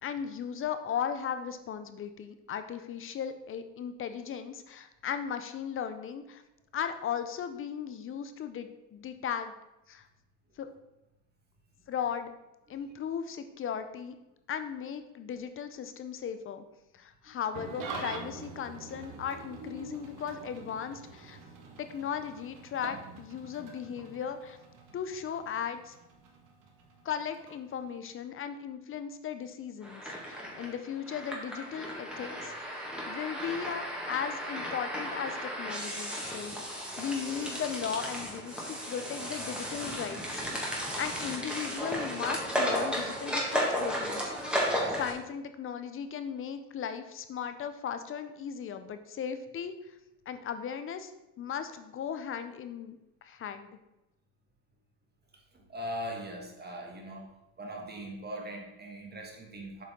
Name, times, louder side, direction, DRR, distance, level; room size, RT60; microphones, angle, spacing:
voice 1, 0.0-6.4 6.7-9.5 9.9-10.1 10.6-10.7 11.9-12.3 12.7-14.2 14.5-16.6 16.9-21.4 21.8-24.6 24.9-26.0 27.0-32.7 33.1-44.3 44.9-50.0 50.3-51.1 51.4-53.8, left 8 dB, 25° left, 9 dB, 0.5 m, -37 dB
Engine starting / Idling, 17.5-28.1, right 3 dB, 40° right, 1.3 m, -46 dB
sound 1, 29.8-45.1, equal, ahead, 1.6 m, -34 dB
voice 2, 55.7-57.3 57.6-59.8, equal, 20° right, 1 dB, 1.6 m, -40 dB
7.9 x 5.2 x 3.6 m, 0.94 s
supercardioid pair, 110°, 49 cm